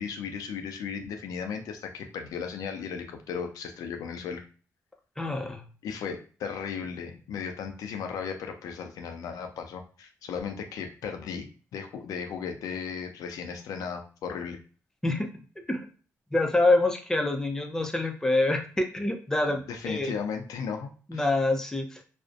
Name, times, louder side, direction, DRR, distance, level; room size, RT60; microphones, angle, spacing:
voice 1, 0.0-4.4 5.8-14.6 19.7-21.3, left 6 dB, 85° left, 5 dB, 0.4 m, -36 dB
voice 2, 5.2-5.6 15.0-15.3 15.7-15.9 16.3-20.1 21.1-22.0, left 2 dB, 10° left, 4 dB, 0.5 m, -26 dB
2.5 x 2.1 x 2.4 m, 0.38 s
cardioid pair, 65°, 6 cm